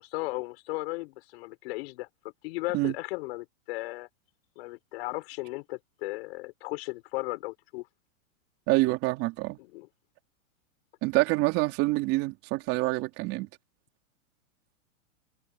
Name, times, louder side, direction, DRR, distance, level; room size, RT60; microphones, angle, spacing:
voice 1, 0.0-2.1 2.4-4.1 4.6-7.9 9.6-9.9, left 22 dB, 50° left, 6.0 m, -36 dB
voice 2, 8.7-9.6 11.0-13.5, right 21 dB, 35° right, 3.5 m, -26 dB
hypercardioid pair, 150°, 41 cm